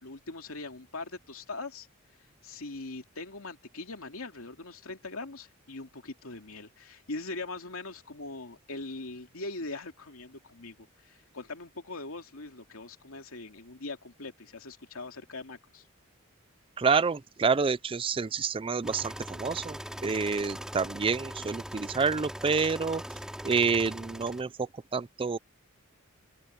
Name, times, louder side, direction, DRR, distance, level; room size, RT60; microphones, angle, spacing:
voice 1, 0.0-1.9 2.4-15.9, left 3 dB, 80° left, 2.6 m, -41 dB
voice 2, 16.8-19.1 19.4-19.8 20.0-23.0 23.4-24.5 24.9-25.4, right 5 dB, 25° right, 0.4 m, -28 dB
sound 1, 18.8-24.4, equal, 5° right, 4.7 m, -41 dB
open air
head